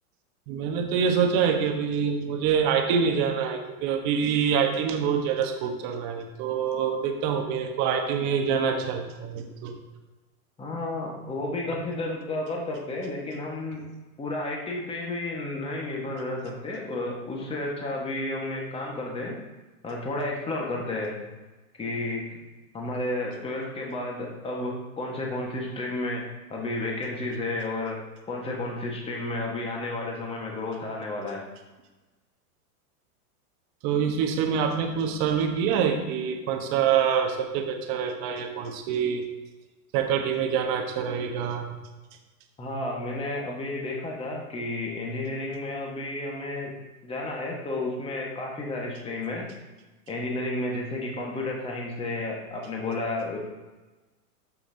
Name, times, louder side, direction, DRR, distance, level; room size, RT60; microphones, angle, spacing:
voice 1, 0.5-9.7 33.8-39.2 39.9-41.7, right 7 dB, 40° right, 4 dB, 1.3 m, -26 dB
voice 2, 10.6-13.8 14.2-19.3 19.8-21.2 21.8-22.2 22.7-28.0 28.3-31.4 42.6-46.7 47.0-49.5 50.1-53.4, left 2 dB, 10° left, -1 dB, 1.5 m, -32 dB
13.0 x 5.8 x 2.8 m, 1.2 s
hypercardioid pair, 140°, 46 cm